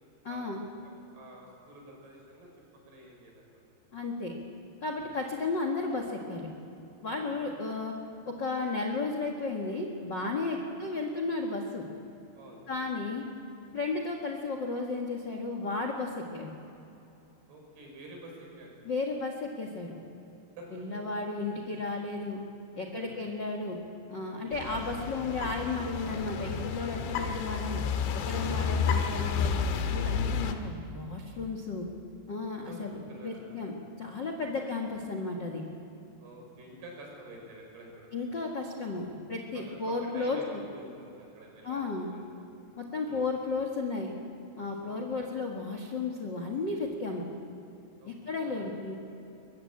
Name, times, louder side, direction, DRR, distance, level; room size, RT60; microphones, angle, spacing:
voice 1, 0.2-0.6 3.9-4.3 4.8-6.5 7.0-7.9 8.2-11.9 12.7-13.2 13.7-16.5 18.8-20.0 20.7-22.4 22.7-23.8 24.1-27.8 28.1-31.9 32.3-35.6 38.1-40.6 41.6-42.1 42.8-44.1 44.6-47.2 48.1-48.9, left 3 dB, 55° left, 2 dB, 1.2 m, -34 dB
voice 2, 1.1-2.5 2.9-3.6 4.9-5.1 7.1-7.7 10.5-10.7 12.3-13.2 17.5-18.7 20.6-20.7 20.9-21.0 21.5-21.8 22.7-23.2 24.3-24.7 27.0-27.1 28.6-28.8 32.4-33.6 34.4-34.6 36.2-38.1 39.5-42.2 43.0-43.3 44.8-45.3 48.0-48.1 48.4-48.6, right 1 dB, 65° right, -1 dB, 7.6 m, -49 dB
sound 1, 24.5-30.5, left 6 dB, 85° left, 3.7 m, -31 dB
22.5 x 22.0 x 8.7 m, 2.9 s
omnidirectional pair, 5.1 m